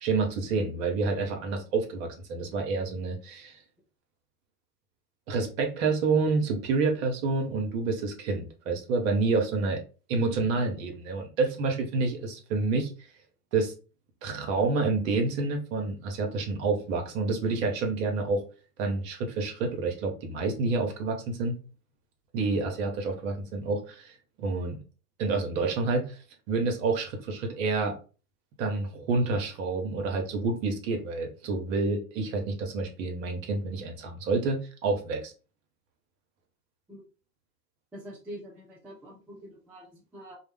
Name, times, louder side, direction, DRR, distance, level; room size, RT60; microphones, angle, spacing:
voice 1, 0.0-3.6 5.3-9.8 10.1-12.9 13.5-13.7 14.2-18.4 18.8-21.6 22.3-24.1 24.4-24.8 25.2-26.2 26.5-27.9 28.6-35.3, right 3 dB, 55° right, 3 dB, 0.9 m, -28 dB
voice 2, 37.9-40.4, equal, 5° right, -4 dB, 0.4 m, -45 dB
2.3 x 2.1 x 3.3 m, 0.35 s
hypercardioid pair, 90°, 48 cm